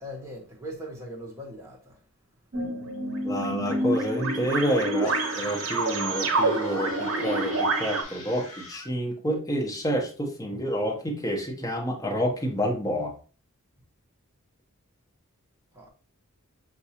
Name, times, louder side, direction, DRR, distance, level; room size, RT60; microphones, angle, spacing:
voice 1, 0.0-1.9 15.7-15.9, equal, 10° right, 1.0 m, -40 dB
sound 1, 2.5-8.0, right 2 dB, 60° right, 0.7 m, -27 dB
voice 2, 3.2-13.1, equal, 15° left, 0.6 m, -28 dB
sound 2, 5.0-8.9, left 2 dB, 75° left, 1.0 m, -41 dB
5.8 x 2.6 x 2.8 m
head